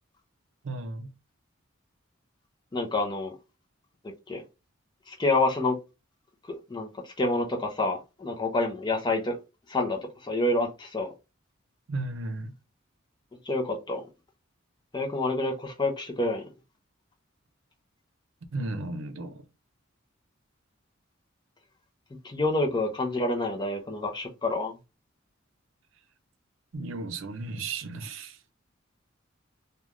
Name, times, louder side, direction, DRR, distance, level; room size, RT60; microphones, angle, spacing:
voice 1, 0.6-1.1 11.9-12.5 18.5-19.4 26.7-28.4, right 2 dB, 65° right, 0.5 m, -34 dB
voice 2, 2.7-3.4 4.3-4.4 5.1-5.8 6.4-9.4 9.7-11.1 13.4-14.1 14.9-16.5 22.2-24.7, left 2 dB, 20° left, 0.5 m, -28 dB
3.2 x 2.2 x 2.4 m
head